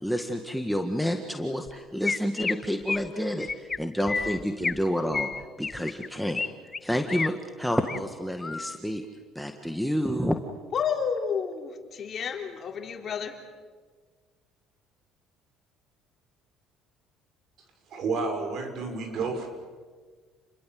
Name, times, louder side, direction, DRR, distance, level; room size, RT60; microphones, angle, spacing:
voice 1, 0.0-5.3 5.6-6.4 6.8-9.0 9.4-10.4, equal, ahead, 4 dB, 1.8 m, -29 dB
Chirp tweet, 1.7-1.8 2.0-2.5 2.9-3.1 3.4-3.8 4.1-4.8 5.1-6.5 6.7-7.3 7.7-8.0 8.4-8.8, left 4 dB, 25° left, 0.8 m, -30 dB
voice 2, 10.7-13.4, left 6 dB, 45° left, 4 dB, 3.6 m, -30 dB
voice 3, 17.9-19.5, right 4 dB, 55° right, 5 dB, 6.2 m, -30 dB
30.0 x 21.5 x 7.8 m, 1.5 s
cardioid pair, 105°, 0 cm